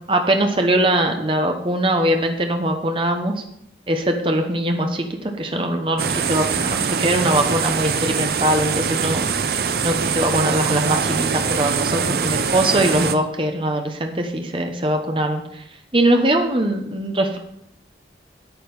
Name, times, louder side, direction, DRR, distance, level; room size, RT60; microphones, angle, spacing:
voice 1, 0.1-3.4 3.9-9.3 9.8-15.6 15.9-17.4, right 1 dB, 30° right, 4 dB, 1.0 m, -21 dB
sound 1, 6.0-13.1, right 6 dB, 60° right, 0.6 m, -23 dB
9.1 x 8.5 x 5.4 m, 0.76 s
head